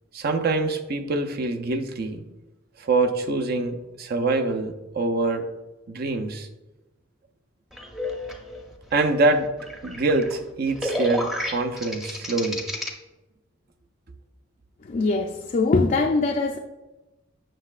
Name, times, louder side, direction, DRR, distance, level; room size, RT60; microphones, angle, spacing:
voice 1, 0.1-2.2 2.8-5.5 5.9-6.5 8.9-9.5 9.8-12.6, right 3 dB, 50° right, 6 dB, 0.5 m, -25 dB
sound 1, 7.7-12.9, left 1 dB, ahead, 0.6 m, -32 dB
voice 2, 14.8-16.6, left 3 dB, 40° left, 1 dB, 0.4 m, -22 dB
7.6 x 6.3 x 2.4 m, 1.0 s
head